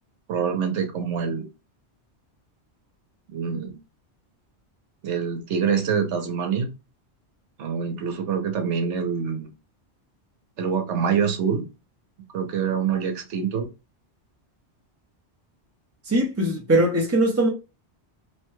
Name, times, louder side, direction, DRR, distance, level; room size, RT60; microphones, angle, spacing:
voice 1, 0.3-1.4 3.3-3.8 5.0-6.7 7.6-9.5 10.6-11.6 12.3-13.7, right 6 dB, 85° right, 1.1 m, -25 dB
voice 2, 16.0-17.5, right 1 dB, 20° right, 0.4 m, -21 dB
3.0 x 2.2 x 3.0 m
omnidirectional pair, 1.2 m